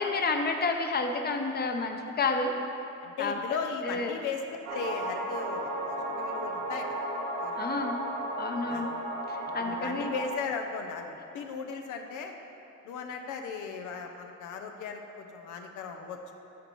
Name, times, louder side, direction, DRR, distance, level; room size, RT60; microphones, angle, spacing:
voice 1, 0.0-2.5 3.2-3.3 3.8-4.2 7.6-8.0 8.4-8.9 9.3-10.1, left 3 dB, 30° left, 4 dB, 0.8 m, -30 dB
voice 2, 3.0-7.9 8.7-8.9 9.6-12.3 12.8-16.2, left 5 dB, 85° left, 4 dB, 0.7 m, -37 dB
sound 1, 4.7-10.3, right 1 dB, 90° right, 1.0 m, -34 dB
12.5 x 4.2 x 4.5 m, 3.0 s
cardioid pair, 90°, 30 cm